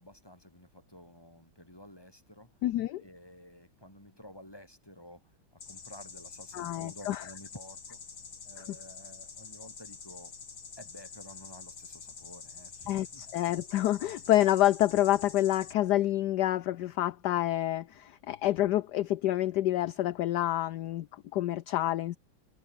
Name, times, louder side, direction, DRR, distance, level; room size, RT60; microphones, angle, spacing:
voice 1, 0.0-2.6 3.0-8.0 8.4-10.4 10.8-13.3, left 1 dB, 10° left, 6.7 m, -52 dB
voice 2, 2.6-3.0 6.5-7.2 12.9-22.2, left 14 dB, 65° left, 1.1 m, -28 dB
sound 1, 5.6-15.7, left 6 dB, 90° left, 3.7 m, -47 dB
omnidirectional pair, 2.2 m